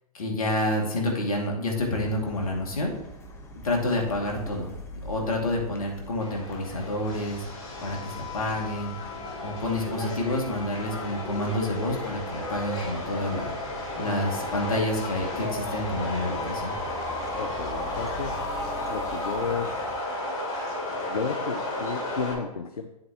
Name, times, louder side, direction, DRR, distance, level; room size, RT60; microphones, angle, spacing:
voice 1, 0.1-2.9 3.6-4.7 5.0-7.4 7.8-8.9 9.4-13.5 14.0-16.7, left 1 dB, 65° left, 0 dB, 2.4 m, -28 dB
sound 1, 1.8-20.0, equal, 15° left, 1.1 m, -44 dB
Subway metro underground, 6.2-22.3, left 1 dB, 35° left, 3.1 m, -33 dB
voice 2, 17.4-18.4 18.9-19.7 21.1-22.9, left 5 dB, 85° left, 7 dB, 0.7 m, -32 dB
9.8 x 7.5 x 3.0 m, 0.88 s
figure-of-eight pair, 110°, 19 cm